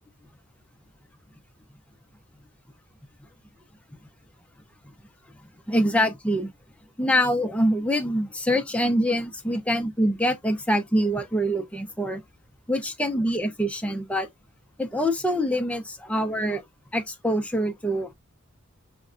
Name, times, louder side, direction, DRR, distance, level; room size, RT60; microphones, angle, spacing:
voice 1, 5.7-6.5 7.0-12.2 12.7-14.3 14.8-16.6 16.9-18.1, equal, 5° left, 0.4 m, -25 dB
5.1 x 2.1 x 2.4 m
head